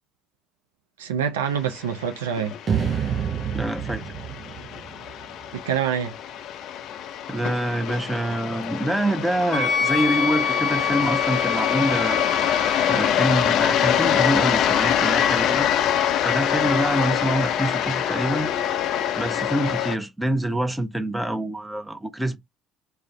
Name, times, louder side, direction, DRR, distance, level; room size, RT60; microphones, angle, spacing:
voice 1, 1.0-2.5 5.5-6.1, right 8 dB, 80° right, 0.4 m, -26 dB
sound 1, 1.6-20.0, left 10 dB, 60° left, 0.3 m, -25 dB
sound 2, 2.7-5.9, right 7 dB, 45° right, 0.8 m, -28 dB
voice 2, 3.5-4.1 7.3-12.3 12.9-15.7 16.2-18.5 19.2-22.4, right 1 dB, 10° right, 0.6 m, -26 dB
Wind instrument woodwind instrument, 9.5-13.1, left 6 dB, 40° left, 0.8 m, -26 dB
2.4 x 2.2 x 3.1 m
hypercardioid pair, 60°, 0 cm